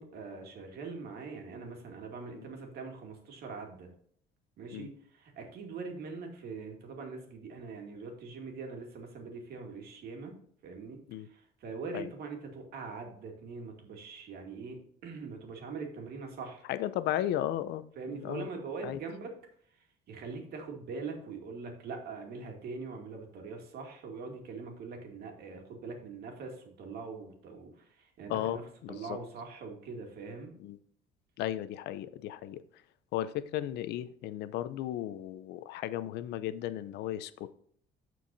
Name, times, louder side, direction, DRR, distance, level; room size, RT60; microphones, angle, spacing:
voice 1, 0.0-3.9 4.6-10.4 10.6-16.7 18.0-19.3 19.7-28.6 28.9-30.5, right 4 dB, 70° right, 2 dB, 2.3 m, -42 dB
voice 2, 16.7-17.8 18.1-18.5 18.8-19.0 28.3-29.2 30.6-30.8 31.4-32.8 33.1-37.5, left 12 dB, 80° left, 14 dB, 0.6 m, -35 dB
14.0 x 4.7 x 2.7 m, 0.63 s
cardioid pair, 110°, 17 cm